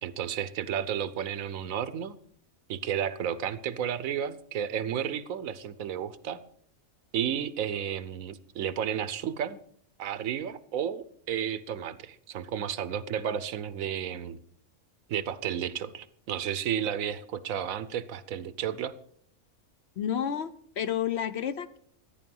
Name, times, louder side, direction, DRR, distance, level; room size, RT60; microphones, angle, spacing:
voice 1, 0.0-2.1 2.7-6.4 7.1-9.6 10.0-14.4 15.1-18.9, right 9 dB, 80° right, 15 dB, 1.2 m, -32 dB
voice 2, 20.0-21.8, left 9 dB, 60° left, 11 dB, 0.8 m, -30 dB
14.0 x 10.0 x 5.4 m, 0.64 s
omnidirectional pair, 1.4 m